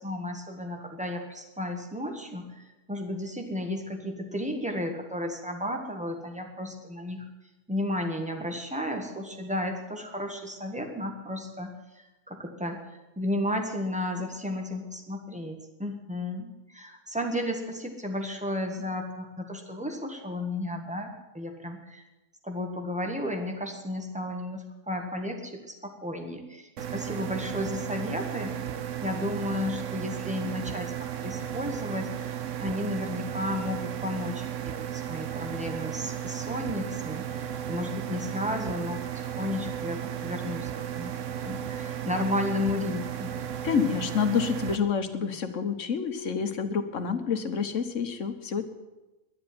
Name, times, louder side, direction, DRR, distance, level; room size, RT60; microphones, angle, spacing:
voice 1, 0.0-7.3 7.7-12.8 13.2-22.0 22.4-28.8 29.0-41.1 41.4-43.3, left 1 dB, 5° right, 3 dB, 1.7 m, -33 dB
sound 1, 26.8-44.8, right 10 dB, 90° right, 1.2 m, -34 dB
voice 2, 43.6-48.6, left 6 dB, 90° left, 8 dB, 1.5 m, -28 dB
11.0 x 10.5 x 9.5 m, 1.1 s
omnidirectional pair, 1.3 m